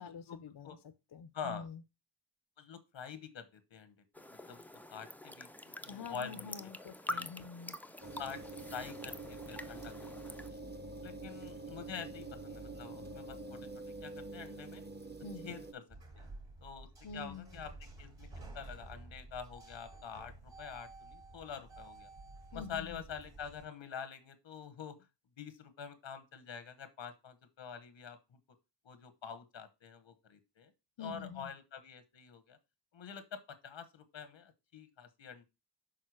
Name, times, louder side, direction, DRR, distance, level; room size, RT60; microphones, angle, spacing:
voice 1, 0.0-1.8 5.9-7.8 15.2-15.5 17.0-17.5 22.5-23.0 31.0-31.5, left 5 dB, 60° left, 0.7 m, -46 dB
voice 2, 1.3-1.7 2.6-4.0 4.5-4.6 4.9-6.5 7.1-7.4 8.2-8.4 8.7-10.6 11.0-14.8 15.4-15.8 16.1-16.3 16.6-16.9 17.1-18.3 18.5-22.1 22.5-25.0 25.4-28.4 28.8-30.7 31.0-32.6 32.9-35.5, left 7 dB, 85° left, 1.2 m, -46 dB
sound 1, 4.1-10.5, left 1 dB, 5° left, 0.5 m, -46 dB
sound 2, 8.0-15.7, right 2 dB, 20° right, 1.0 m, -46 dB
sound 3, 15.9-23.6, right 2 dB, 85° right, 4.5 m, -52 dB
6.6 x 3.8 x 6.2 m
cardioid pair, 55°, 44 cm